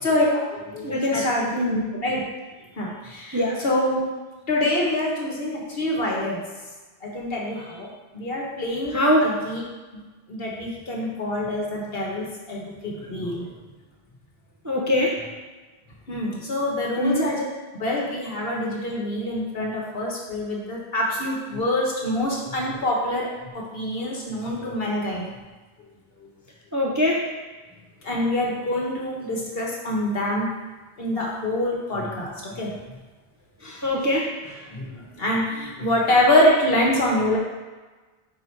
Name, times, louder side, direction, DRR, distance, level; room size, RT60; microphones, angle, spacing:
voice 1, 0.0-2.2 2.8-3.4 3.6-4.0 4.5-6.4 7.0-7.9 8.1-9.6 9.9-10.0 10.3-13.5 16.1-17.4 17.8-23.3 23.5-25.3 28.0-30.5 31.0-32.7 34.7-37.4, left 1 dB, 65° left, -3 dB, 1.4 m, -25 dB
voice 2, 0.8-1.3 1.5-1.9 3.3-3.6 8.9-9.4 14.6-15.2 17.0-17.3 26.7-27.3 33.6-34.7, left 1 dB, 20° right, -3 dB, 0.5 m, -23 dB
4.8 x 4.4 x 4.5 m, 1.3 s
omnidirectional pair, 1.1 m